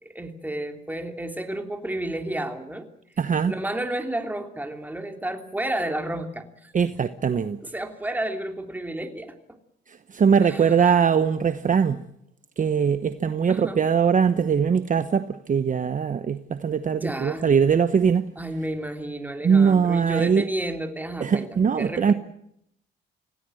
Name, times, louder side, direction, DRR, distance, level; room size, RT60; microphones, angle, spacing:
voice 1, 0.0-2.9 3.5-6.7 7.6-9.3 10.4-10.8 13.5-13.8 16.9-17.5 18.3-22.1, right 1 dB, 10° right, 5 dB, 3.2 m, -31 dB
voice 2, 3.2-3.5 6.7-7.6 10.1-12.0 12.6-18.2 19.4-20.4 21.2-22.1, right 6 dB, 40° right, 11 dB, 1.1 m, -21 dB
26.0 x 17.5 x 7.9 m, 0.75 s
cardioid pair, 90°, 20 cm